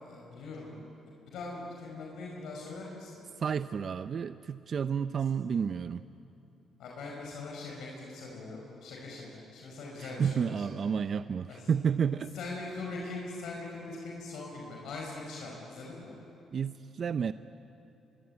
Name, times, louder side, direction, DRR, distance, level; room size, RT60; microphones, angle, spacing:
voice 1, 0.0-0.8 1.3-3.2 5.2-5.4 6.8-10.7 11.5-11.7 12.2-16.1, left 3 dB, 80° left, -2 dB, 5.3 m, -41 dB
voice 2, 3.4-6.0 10.0-12.3 16.5-17.3, right 7 dB, 50° right, 12 dB, 0.6 m, -31 dB
25.0 x 23.5 x 9.5 m, 2.9 s
cardioid pair, 90°, 0 cm